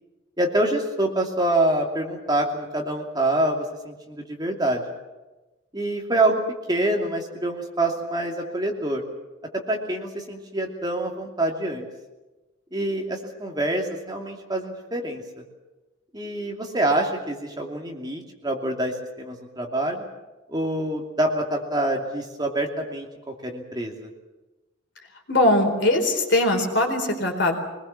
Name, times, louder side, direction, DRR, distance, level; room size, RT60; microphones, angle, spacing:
voice 1, 0.4-4.8 5.7-6.4 6.7-9.0 9.5-11.8 12.7-15.2 16.1-20.0 20.5-24.1, right 1 dB, 20° right, 1 dB, 2.7 m, -26 dB
voice 2, 25.3-27.5, left 1 dB, 60° left, 3 dB, 4.2 m, -21 dB
24.0 x 20.5 x 7.2 m, 1.1 s
head